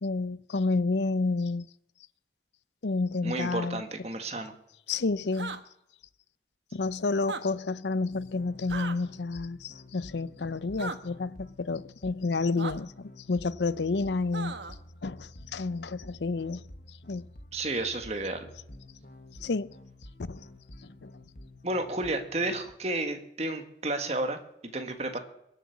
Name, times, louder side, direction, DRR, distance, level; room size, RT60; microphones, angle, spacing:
voice 1, 0.0-1.7 2.8-3.8 4.9-5.6 6.7-14.5 15.0-16.6 17.1-17.2 19.4-19.7 20.3-20.4 21.0-21.1, left 3 dB, 80° left, 0.6 m, -30 dB
voice 2, 3.2-4.5 17.5-18.5 21.6-25.2, right 2 dB, 35° right, 1.7 m, -32 dB
sound 1, 5.3-5.6 7.2-7.4 8.7-9.0 10.8-11.0 12.6-12.7 14.3-14.8, right 4 dB, 85° right, 1.1 m, -36 dB
sound 2, 8.1-22.7, left 1 dB, 50° left, 1.3 m, -50 dB
22.0 x 8.0 x 7.1 m
head